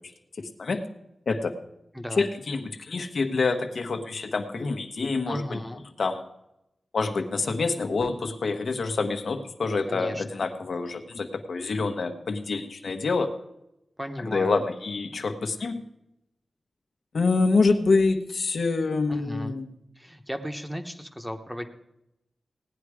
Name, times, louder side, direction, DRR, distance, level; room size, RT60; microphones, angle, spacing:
voice 1, 0.4-0.9 1.3-1.5 2.2-5.6 6.0-6.2 6.9-13.3 14.2-15.8 17.1-19.7, left 3 dB, 65° left, 5 dB, 1.2 m, -26 dB
voice 2, 5.2-5.8 9.9-10.2 14.0-14.6 19.1-19.5 20.0-21.7, equal, 5° right, 5 dB, 1.1 m, -35 dB
17.5 x 10.0 x 4.9 m, 0.86 s
wide cardioid pair, 135°, 0 cm